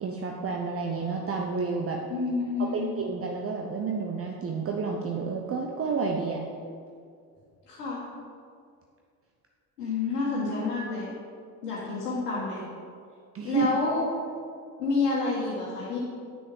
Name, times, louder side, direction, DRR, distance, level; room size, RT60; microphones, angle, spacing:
voice 1, 0.0-2.0 2.6-6.4 13.3-13.7, right 5 dB, 30° right, 1 dB, 0.7 m, -30 dB
voice 2, 2.1-2.9 7.7-8.0 9.8-11.1 11.6-12.6 13.4-14.0 14.8-16.0, left 3 dB, 85° left, -7 dB, 1.5 m, -29 dB
7.9 x 6.4 x 3.5 m, 2.3 s
hypercardioid pair, 60°, 46 cm